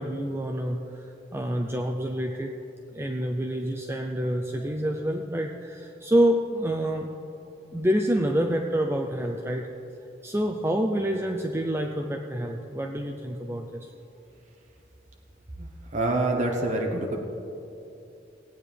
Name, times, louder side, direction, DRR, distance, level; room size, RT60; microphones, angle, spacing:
voice 1, 0.0-2.5 2.9-7.1 7.7-9.7 10.2-13.9, equal, 15° right, 2 dB, 0.5 m, -27 dB
voice 2, 15.6-17.2, right 2 dB, 40° right, 1 dB, 1.0 m, -26 dB
18.0 x 9.0 x 3.4 m, 2.8 s
head